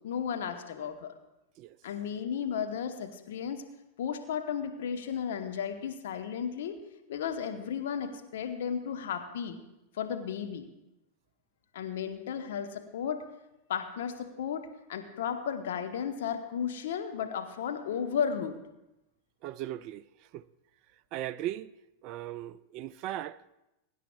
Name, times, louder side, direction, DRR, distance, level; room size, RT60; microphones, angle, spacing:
voice 1, 0.0-1.2 1.8-3.7 4.0-6.8 7.1-9.6 9.9-10.7 11.7-13.2 13.7-18.5, left 7 dB, 55° left, 1.1 m, -34 dB
voice 2, 19.4-20.4 21.1-21.7 22.0-23.6, right 13 dB, 40° right, 0.3 m, -38 dB
23.0 x 11.0 x 2.4 m
figure-of-eight pair, 90°, 0 cm